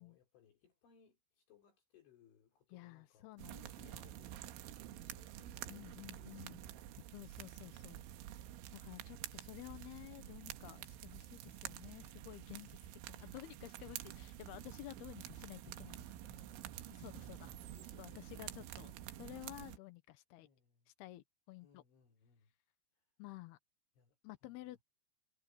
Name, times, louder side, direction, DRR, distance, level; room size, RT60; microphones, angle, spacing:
voice 1, 0.0-6.9 7.3-7.8 8.8-9.3 11.2-11.3 13.4-14.0 16.2-18.7 18.9-19.3 20.4-20.9 21.6-22.5 22.9-23.1 24.0-24.7, left 7 dB, 65° left, 5.6 m, -69 dB
voice 2, 2.7-3.6 3.8-4.0 5.7-6.6 7.1-8.0 8.7-12.8 13.1-16.2 16.9-17.6 18.0-18.9 19.2-20.5 21.0-21.8 23.2-23.6 24.2-24.8, left 17 dB, 80° left, 2.3 m, -52 dB
sound 1, 3.4-19.8, right 12 dB, 75° right, 3.4 m, -49 dB
omnidirectional pair, 5.9 m